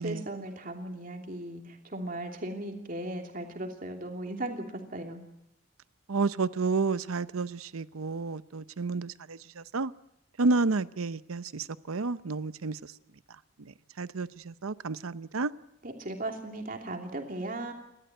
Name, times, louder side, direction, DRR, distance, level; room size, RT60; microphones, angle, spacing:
voice 1, 0.0-4.7 4.9-5.2 15.8-17.7, right 1 dB, 40° right, 2.9 m, -37 dB
voice 2, 6.1-9.9 10.4-12.8 14.0-15.5, right 3 dB, 85° right, 0.7 m, -30 dB
29.5 x 13.0 x 9.1 m
head